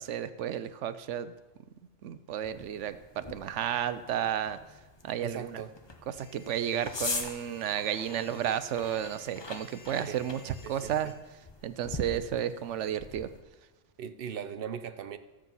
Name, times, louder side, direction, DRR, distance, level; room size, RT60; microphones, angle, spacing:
voice 1, 0.0-1.3 2.0-4.6 5.0-5.6 6.1-11.1 11.6-13.3, right 10 dB, 80° right, 13 dB, 1.0 m, -32 dB
sound 1, 2.4-13.4, left 3 dB, 25° left, 0.8 m, -43 dB
voice 2, 5.2-5.7 10.0-10.2 10.6-11.1 14.0-15.2, right 8 dB, 55° right, 10 dB, 0.8 m, -39 dB
sound 2, 6.1-11.1, left 3 dB, 45° left, 1.7 m, -56 dB
13.0 x 7.6 x 5.5 m, 1.1 s
omnidirectional pair, 1.2 m